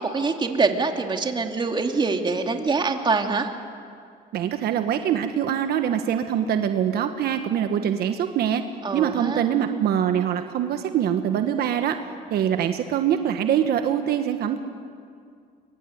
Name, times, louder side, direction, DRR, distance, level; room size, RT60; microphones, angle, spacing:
voice 1, 0.0-3.5 8.8-9.4, right 4 dB, 25° right, 4 dB, 2.6 m, -24 dB
voice 2, 4.3-8.6 8.9-12.0 12.3-14.6, right 9 dB, 70° right, 7 dB, 1.4 m, -24 dB
24.0 x 23.5 x 9.4 m, 2.2 s
cardioid pair, 110°, 17 cm